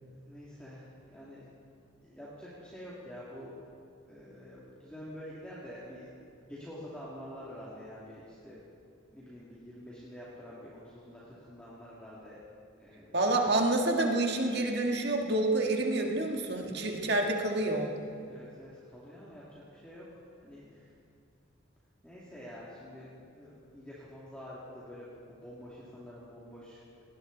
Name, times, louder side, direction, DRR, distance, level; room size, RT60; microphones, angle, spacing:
voice 1, 0.3-1.4 2.0-3.6 4.1-6.1 6.3-8.6 9.1-12.4 12.8-13.2 18.3-20.1 20.4-20.9 22.0-26.8, equal, 5° left, -9 dB, 2.4 m, -47 dB
voice 2, 13.1-17.9, right 2 dB, 55° right, 1 dB, 1.8 m, -28 dB
19.5 x 18.0 x 4.0 m, 2.4 s
head